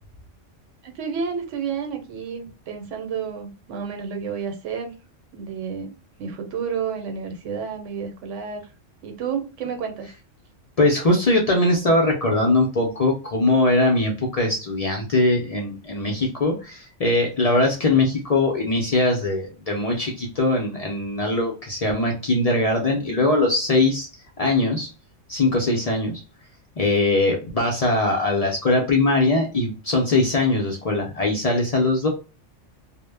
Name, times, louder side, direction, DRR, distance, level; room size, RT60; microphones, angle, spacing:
voice 1, 0.8-4.9 5.3-5.9 6.2-8.7 9.0-10.1, right 6 dB, 85° right, 0.9 m, -30 dB
voice 2, 10.8-24.1 24.4-24.9 25.3-26.2 26.8-32.1, left 2 dB, 60° left, 0.4 m, -21 dB
2.0 x 2.0 x 3.2 m
omnidirectional pair, 1.3 m